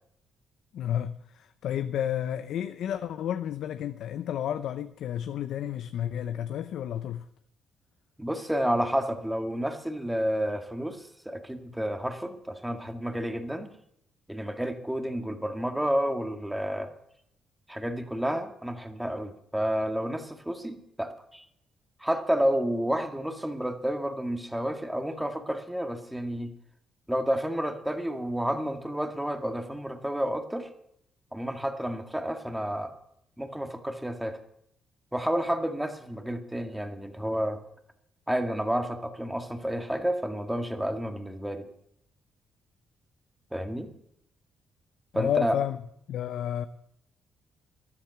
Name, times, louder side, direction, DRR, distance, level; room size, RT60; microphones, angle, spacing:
voice 1, 0.7-7.3 45.1-45.8 46.1-46.7, left 10 dB, 75° left, 0.7 m, -31 dB
voice 2, 8.2-13.7 14.3-16.9 17.7-21.4 22.0-26.5 27.1-30.7 31.3-32.9 33.4-34.4 35.1-37.6 38.3-41.7 43.5-43.9 45.1-45.5, equal, 5° right, 1.9 m, -30 dB
13.0 x 10.5 x 8.1 m
cardioid pair, 90°, 0 cm